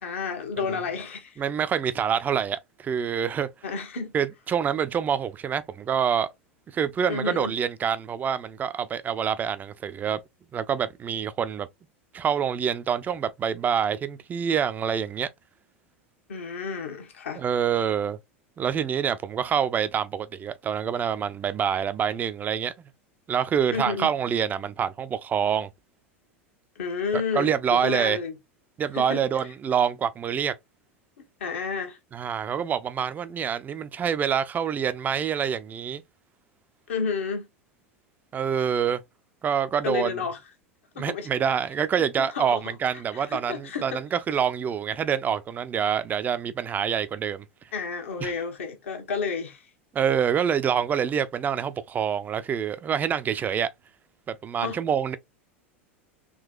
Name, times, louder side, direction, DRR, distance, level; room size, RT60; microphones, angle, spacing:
voice 1, 0.0-1.4 3.6-4.1 7.1-7.6 16.3-17.4 23.7-24.1 26.7-28.4 28.9-29.2 31.4-32.0 36.9-37.5 39.8-40.4 40.9-41.3 42.2-44.0 47.7-49.7 54.6-54.8, left 5 dB, 70° left, 1.2 m, -31 dB
voice 2, 1.4-3.5 4.1-6.3 6.7-10.2 10.5-11.7 12.1-15.3 17.4-18.2 18.6-22.7 23.3-25.7 27.1-28.2 28.8-30.5 32.1-36.0 38.3-39.0 39.4-40.1 41.0-47.4 48.2-48.3 49.9-53.7 54.3-55.2, right 8 dB, 25° right, 0.4 m, -26 dB
3.8 x 2.8 x 2.4 m
figure-of-eight pair, 85°, 7 cm